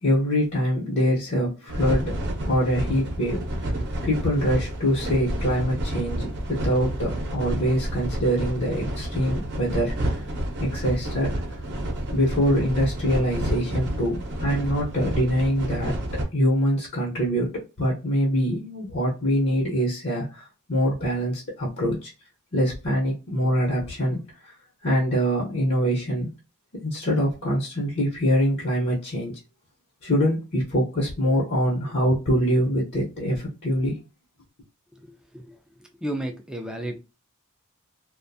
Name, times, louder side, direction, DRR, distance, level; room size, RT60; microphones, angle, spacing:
voice 1, 0.0-2.2 2.4-3.7 4.0-10.2 10.6-11.3 12.1-15.9 16.3-17.5 17.8-22.1 22.5-24.5 24.8-26.3 26.8-29.3 30.0-34.0, equal, 50° left, 0.8 m, -24 dB
sound 1, 1.7-16.2, right 1 dB, 50° right, 0.7 m, -30 dB
voice 2, 35.0-35.6 36.0-37.0, right 1 dB, 5° right, 0.4 m, -33 dB
2.5 x 2.2 x 2.6 m
head